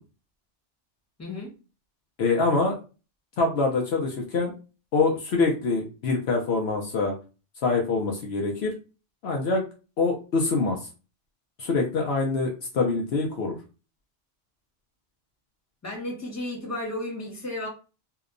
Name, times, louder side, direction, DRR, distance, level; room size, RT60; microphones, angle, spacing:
voice 1, 1.2-1.5 15.8-17.7, left 1 dB, 15° left, 0.9 m, -33 dB
voice 2, 2.2-2.8 3.4-4.5 4.9-7.1 7.6-8.7 9.2-9.6 10.0-10.8 11.6-13.5, left 3 dB, 70° left, 0.8 m, -25 dB
2.8 x 2.1 x 2.4 m
omnidirectional pair, 1.2 m